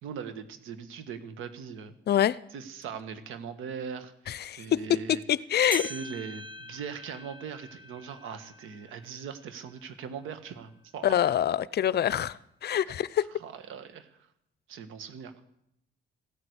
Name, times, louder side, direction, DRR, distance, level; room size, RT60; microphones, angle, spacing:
voice 1, 0.0-2.0 2.5-5.2 5.8-11.3 13.4-14.3 14.7-15.4, right 7 dB, 85° right, 1.6 m, -40 dB
voice 2, 2.1-2.4 4.3-5.9 11.0-13.3, left 10 dB, 55° left, 0.6 m, -26 dB
sound 1, 5.7-10.4 10.9-11.0 11.8-11.9 12.8-12.9, right 2 dB, 25° right, 1.5 m, -44 dB
15.5 x 9.7 x 8.0 m
cardioid pair, 90°, 20 cm